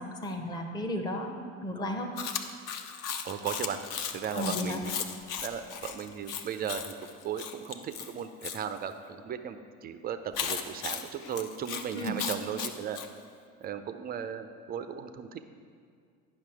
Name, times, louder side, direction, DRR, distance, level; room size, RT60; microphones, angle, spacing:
voice 1, 0.0-2.1 4.3-4.8 11.9-12.2, left 1 dB, 10° left, 3 dB, 0.7 m, -34 dB
Chewing mastication, 2.2-8.6 10.3-13.1, left 7 dB, 45° left, 0.7 m, -36 dB
voice 2, 3.2-3.8 4.1-4.9 5.4-6.9 7.2-13.0 13.6-15.4, right 8 dB, 25° right, 9 dB, 0.4 m, -36 dB
9.6 x 5.9 x 4.7 m, 2.2 s
figure-of-eight pair, 70°, 42 cm